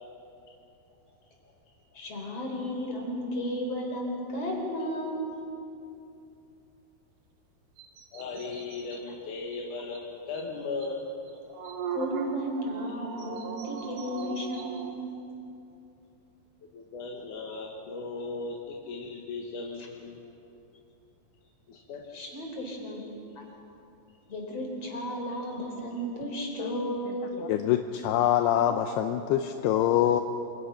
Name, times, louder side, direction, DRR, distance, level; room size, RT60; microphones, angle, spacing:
voice 1, 1.9-5.3 11.9-15.1 18.2-18.3 22.1-23.0 23.3-23.4 24.3-27.2, equal, 35° left, 1 dB, 5.2 m, -34 dB
sound 1, 7.8-9.0 9.5-9.6 9.9-10.0 10.3-10.4 10.8-10.9 11.3-14.9, right 7 dB, 75° right, 3.9 m, -38 dB
voice 2, 8.1-11.0 16.7-20.2 21.7-22.0, left 3 dB, 55° left, -1 dB, 2.8 m, -37 dB
voice 3, 27.4-30.2, left 11 dB, 80° left, 6 dB, 2.8 m, -25 dB
28.0 x 27.5 x 5.8 m, 2.7 s
omnidirectional pair, 4.8 m